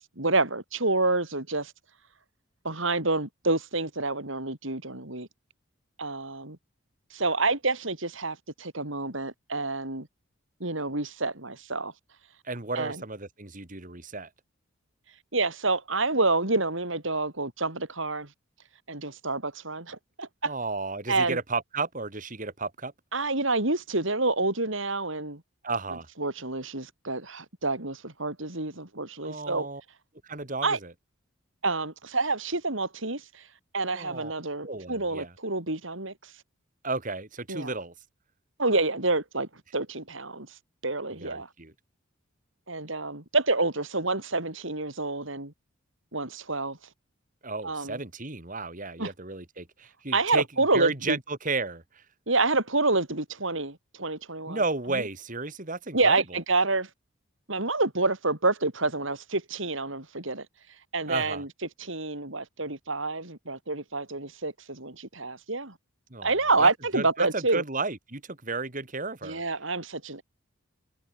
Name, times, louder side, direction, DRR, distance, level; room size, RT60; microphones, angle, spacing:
voice 1, 0.0-1.7 2.6-5.3 6.0-6.6 7.1-10.1 10.6-11.9 12.8-13.0 15.3-18.3 18.9-20.5 21.1-21.4 23.1-25.4 26.2-29.7 30.6-30.8 31.6-33.4 33.7-36.3 37.5-37.7 38.6-40.5 40.8-41.5 42.7-45.5 46.1-46.8 47.6-48.0 49.0-49.1 50.1-51.2 52.3-54.6 55.9-56.9 57.5-60.5 60.9-61.5 61.8-65.7 66.2-67.6 69.2-70.2, right 3 dB, 65° right, 4.9 m, -28 dB
voice 2, 12.4-14.3 20.4-22.9 25.6-26.1 29.2-29.8 30.2-30.9 33.9-34.3 34.6-35.3 36.8-37.9 41.1-41.7 47.4-50.4 50.7-52.0 54.5-56.4 61.1-61.4 66.1-69.4, right 3 dB, 40° right, 2.7 m, -33 dB
head